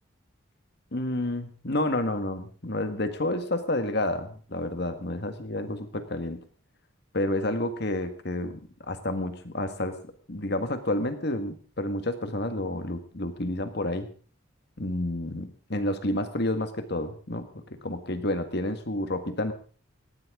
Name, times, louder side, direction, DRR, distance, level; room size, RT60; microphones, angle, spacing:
voice 1, 0.9-6.4 7.1-8.6 8.9-10.0 10.3-14.1 14.8-19.5, left 1 dB, 50° left, 9 dB, 1.8 m, -30 dB
19.0 x 15.0 x 3.8 m, 0.40 s
head